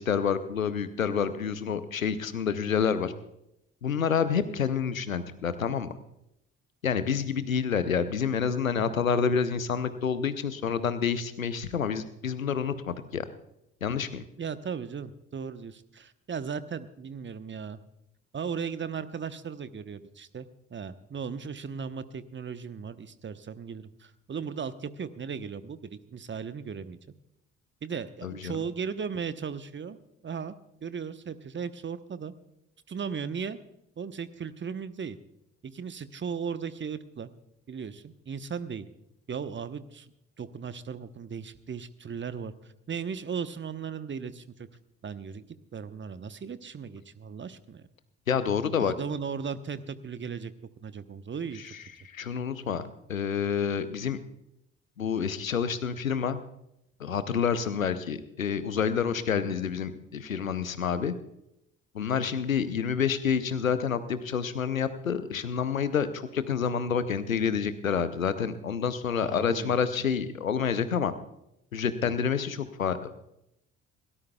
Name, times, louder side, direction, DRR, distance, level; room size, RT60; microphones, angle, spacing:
voice 1, 0.0-3.1 3.8-5.9 6.8-13.3 13.8-14.2 28.2-28.6 48.3-48.9 51.6-54.2 55.0-56.4 57.0-61.1 61.9-71.1 71.7-73.2, left 7 dB, 85° left, 13 dB, 0.7 m, -28 dB
voice 2, 14.4-17.8 18.3-27.0 27.8-30.0 30.2-30.5 30.8-32.3 32.9-33.6 34.0-35.2 35.6-37.3 37.7-38.8 39.3-40.1 40.4-42.5 42.9-44.7 45.0-45.4 45.7-47.8 48.8-50.5 50.8-51.7 62.1-62.3 69.2-69.8, right 6 dB, 30° right, 13 dB, 1.0 m, -36 dB
21.0 x 18.0 x 2.3 m, 0.81 s
figure-of-eight pair, 45°, 39 cm